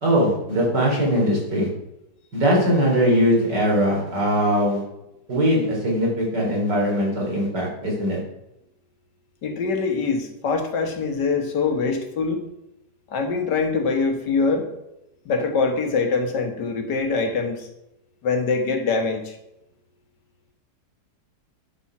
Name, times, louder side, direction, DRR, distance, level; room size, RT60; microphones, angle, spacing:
voice 1, 0.0-1.7 2.3-4.8 5.3-8.2, equal, 85° right, -2 dB, 4.1 m, -21 dB
voice 2, 9.4-12.4 13.1-14.7 15.3-17.7 18.2-19.4, left 4 dB, 80° left, 5 dB, 2.0 m, -23 dB
9.7 x 7.2 x 6.0 m, 0.89 s
omnidirectional pair, 1.8 m